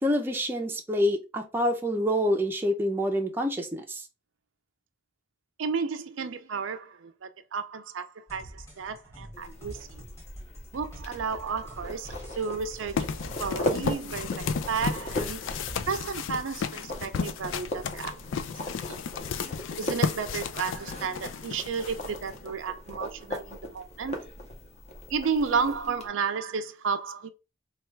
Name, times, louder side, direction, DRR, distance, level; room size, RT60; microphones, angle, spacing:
voice 1, 0.0-4.0, equal, 10° right, 0.5 m, -27 dB
voice 2, 5.6-10.0 10.7-13.1 13.4-15.4 15.9-18.2 18.9-19.0 19.8-24.2 25.1-27.3, right 5 dB, 85° right, 0.5 m, -32 dB
sound 1, 8.3-16.7, right 1 dB, 15° left, 1.4 m, -46 dB
sound 2, 9.3-26.1, left 1 dB, 35° left, 0.8 m, -39 dB
sound 3, 13.0-22.5, left 6 dB, 75° left, 0.4 m, -33 dB
3.2 x 2.4 x 4.4 m
head